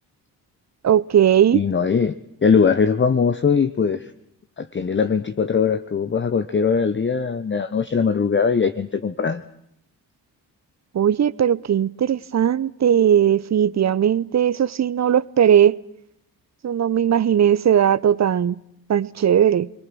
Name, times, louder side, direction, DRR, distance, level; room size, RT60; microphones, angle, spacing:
voice 1, 0.8-1.6 10.9-15.8 16.6-18.6 18.9-19.7, right 9 dB, 35° right, 0.8 m, -18 dB
voice 2, 1.5-2.1 2.4-4.1 4.6-9.4, left 6 dB, 25° left, 0.9 m, -20 dB
29.5 x 21.5 x 6.2 m
hypercardioid pair, 45°, 49 cm